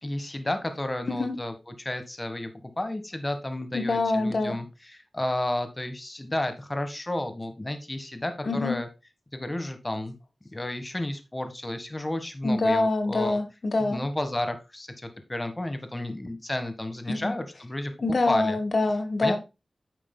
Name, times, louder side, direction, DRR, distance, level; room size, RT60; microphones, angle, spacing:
voice 1, 0.0-2.5 2.8-8.9 9.3-10.1 10.5-13.4 13.8-18.6 19.2-19.4, left 1 dB, 20° left, 9 dB, 1.6 m, -32 dB
voice 2, 3.7-4.6 8.4-8.7 12.4-14.0 17.1-17.3 18.0-19.4, left 2 dB, 55° left, 8 dB, 1.4 m, -25 dB
9.8 x 7.3 x 2.3 m, 0.26 s
wide cardioid pair, 75°, 0 cm